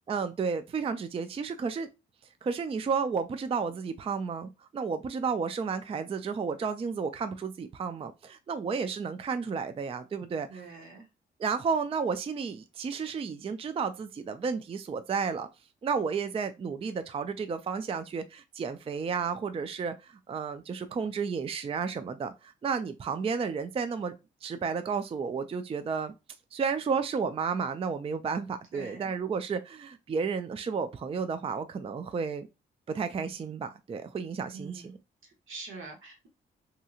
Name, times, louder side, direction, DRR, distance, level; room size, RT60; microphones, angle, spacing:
voice 1, 0.1-1.9 2.4-10.6 11.4-15.5 15.8-24.2 24.4-26.1 26.5-32.5 32.9-34.8, right 5 dB, 30° right, 0.3 m, -32 dB
voice 2, 10.5-11.0 28.7-29.1 34.5-35.0 35.2-36.3, right 4 dB, 75° right, 0.9 m, -44 dB
2.7 x 2.7 x 2.4 m
supercardioid pair, 55°, 21 cm